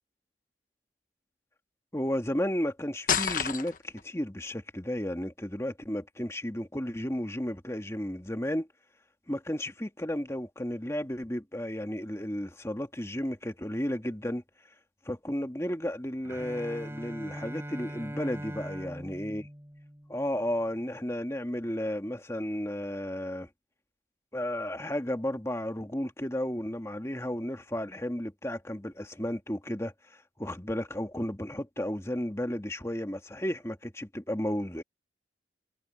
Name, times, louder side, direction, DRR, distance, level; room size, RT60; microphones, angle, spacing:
voice 1, 1.9-8.7 9.3-14.4 15.1-19.5 20.1-23.5 24.3-34.8, left 1 dB, 15° left, 1.7 m, -33 dB
sound 1, 3.1-4.0, left 7 dB, 50° left, 1.3 m, -28 dB
Bowed string instrument, 16.2-20.3, equal, 15° right, 3.9 m, -41 dB
head